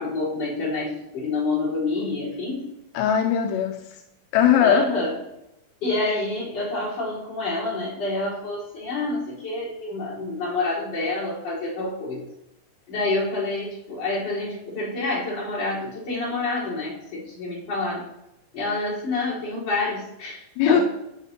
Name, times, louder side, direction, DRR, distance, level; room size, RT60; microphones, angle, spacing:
voice 1, 0.0-2.7 4.6-5.1 5.8-12.2 12.9-18.0 18.5-20.8, left 2 dB, 40° left, -8 dB, 5.3 m, -27 dB
voice 2, 2.9-4.0 4.3-4.9 20.6-20.8, left 9 dB, 85° left, 4 dB, 2.8 m, -20 dB
12.5 x 8.4 x 3.0 m, 0.86 s
omnidirectional pair, 4.9 m